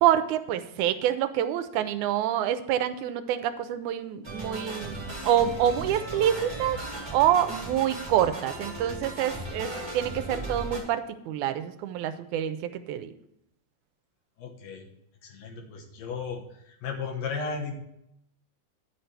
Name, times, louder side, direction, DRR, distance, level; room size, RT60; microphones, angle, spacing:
voice 1, 0.0-6.8 7.1-13.1, right 10 dB, 85° right, 10 dB, 2.1 m, -26 dB
sound 1, 4.2-10.8, right 1 dB, 10° right, 1.6 m, -37 dB
voice 2, 14.4-14.9 15.2-17.7, left 5 dB, 65° left, 2 dB, 2.1 m, -35 dB
9.9 x 4.5 x 6.6 m, 0.76 s
omnidirectional pair, 3.5 m